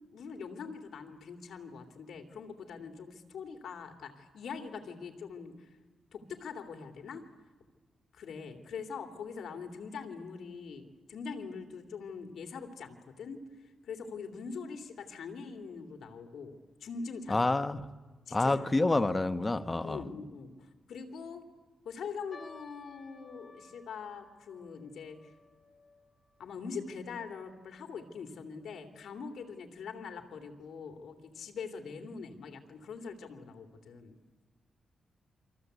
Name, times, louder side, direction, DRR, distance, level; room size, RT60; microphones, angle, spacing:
voice 1, 0.1-5.7 6.1-7.3 8.1-17.6 18.3-18.9 19.8-21.5 21.8-25.3 26.4-34.2, left 5 dB, 80° left, 5 dB, 3.1 m, -43 dB
voice 2, 17.3-17.8 18.3-20.0, left 2 dB, 20° left, 10 dB, 1.2 m, -28 dB
sound 1, 22.3-28.8 29.1-29.2 29.9-30.2 30.8-30.9 31.2-31.4, left 3 dB, 35° left, 4.8 m, -58 dB
28.5 x 25.0 x 8.3 m, 1.3 s
wide cardioid pair, 120°, 0 cm